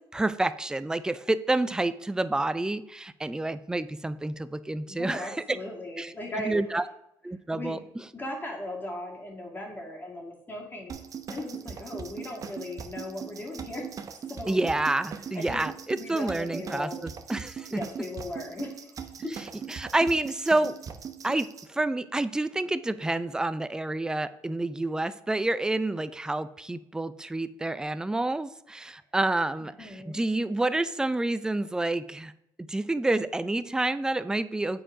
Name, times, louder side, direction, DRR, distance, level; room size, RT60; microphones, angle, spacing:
voice 1, 0.1-5.4 6.0-6.8 7.2-7.8 14.5-17.8 19.7-20.8 21.2-32.3 32.6-34.8, right 2 dB, 10° right, 14 dB, 0.4 m, -28 dB
voice 2, 4.9-6.6 7.5-7.8 8.1-10.9 11.3-13.9 14.3-14.6 15.3-15.6 16.0-17.0 17.7-19.1 29.6-30.2, left 1 dB, 25° left, -1 dB, 2.3 m, -38 dB
sound 1, 10.9-21.7, right 7 dB, 45° right, 0.7 m, -40 dB
7.7 x 4.4 x 4.9 m, 0.80 s
cardioid pair, 100°, 8 cm